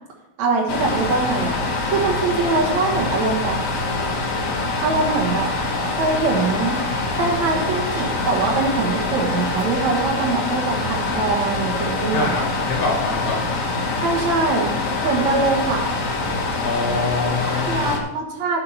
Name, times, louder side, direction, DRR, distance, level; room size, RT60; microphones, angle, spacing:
voice 1, 0.4-1.6 1.8-3.6 4.8-5.5 5.8-6.8 7.1-12.4 14.0-14.7 15.0-15.9 17.4-18.6, right 3 dB, 70° right, -1 dB, 2.7 m, -23 dB
sound 1, 0.7-18.0, left 2 dB, 55° left, 0.9 m, -24 dB
voice 2, 12.1-13.4 16.6-17.8, left 4 dB, 75° left, 0 dB, 3.1 m, -25 dB
11.5 x 6.9 x 4.3 m, 0.96 s
omnidirectional pair, 3.4 m